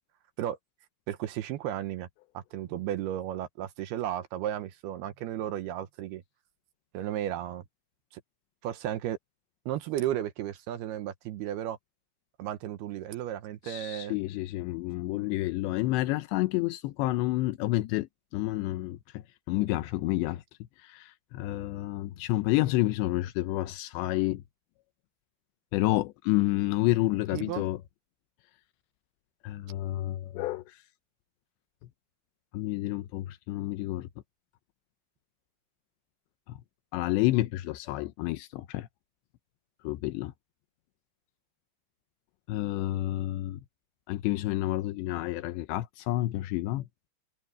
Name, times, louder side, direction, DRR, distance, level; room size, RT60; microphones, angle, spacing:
voice 1, 1.1-2.1 2.3-6.2 6.9-7.6 8.1-8.2 8.6-9.2 9.7-11.8 12.4-14.2 27.3-27.6, right 12 dB, 75° right, 2.7 m, -34 dB
voice 2, 13.6-20.4 20.8-24.4 25.7-27.8 29.4-30.8 32.5-34.1 36.5-36.6 36.9-38.9 39.8-40.3 42.5-43.6 44.1-46.9, left 17 dB, 85° left, 3.0 m, -29 dB
omnidirectional pair, 5.0 m